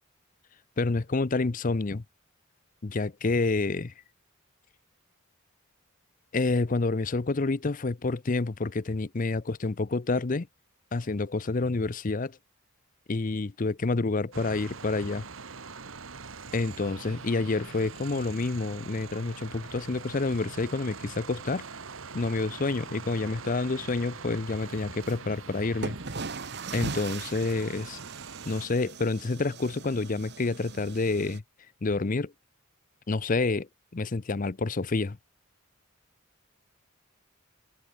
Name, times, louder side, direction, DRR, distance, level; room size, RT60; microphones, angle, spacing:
voice 1, 0.8-2.0 2.8-3.9 6.3-10.5 10.9-12.4 13.1-15.3 16.5-21.7 22.1-26.0 26.7-28.0 28.4-31.4 31.8-32.3 33.1-35.2, left 3 dB, 40° left, 0.6 m, -28 dB
sound 1, 14.3-28.7, right 5 dB, 70° right, 1.4 m, -43 dB
sound 2, 25.0-25.1 25.8-31.4, right 4 dB, 50° right, 1.3 m, -39 dB
head